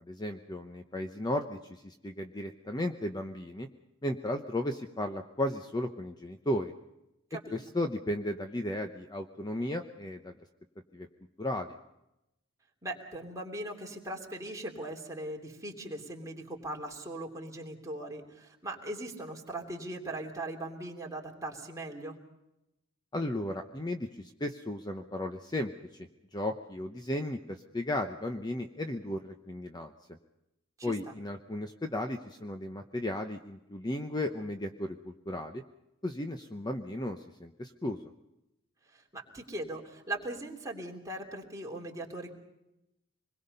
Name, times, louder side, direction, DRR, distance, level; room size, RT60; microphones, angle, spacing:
voice 1, 0.1-3.7 4.0-6.7 7.5-10.3 10.9-11.1 11.4-11.7 23.1-25.7 26.0-29.9 30.8-35.6 36.0-38.0, left 1 dB, 20° left, 5 dB, 0.9 m, -35 dB
voice 2, 12.8-22.1 30.8-30.9 38.9-42.3, right 1 dB, 15° right, -1 dB, 3.1 m, -39 dB
26.0 x 21.0 x 5.5 m, 0.89 s
head